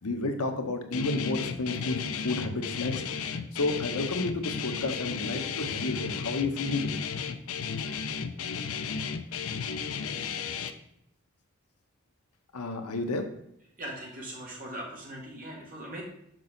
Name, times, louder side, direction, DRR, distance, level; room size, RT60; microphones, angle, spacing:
voice 1, 0.0-3.0 3.5-7.0 12.5-13.3, left 2 dB, 90° left, 6 dB, 1.0 m, -31 dB
Guitar, 0.9-10.7, left 6 dB, 70° left, 0.5 m, -34 dB
voice 2, 13.8-16.0, right 1 dB, 40° right, -3 dB, 2.1 m, -40 dB
6.2 x 5.7 x 3.9 m, 0.75 s
head